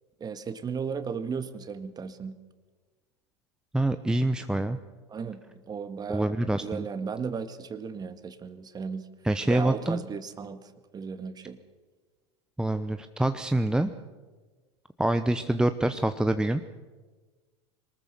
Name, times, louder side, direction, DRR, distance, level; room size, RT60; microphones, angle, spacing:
voice 1, 0.2-2.4 5.1-5.4 5.7-6.3 6.6-9.1 9.5-11.6, right 6 dB, 25° right, 11 dB, 1.7 m, -35 dB
voice 2, 3.7-4.8 6.1-6.9 9.2-10.0 12.6-13.9 15.0-16.6, right 1 dB, 5° right, 9 dB, 0.8 m, -26 dB
23.0 x 19.5 x 6.9 m, 1.3 s
hypercardioid pair, 90°, 15 cm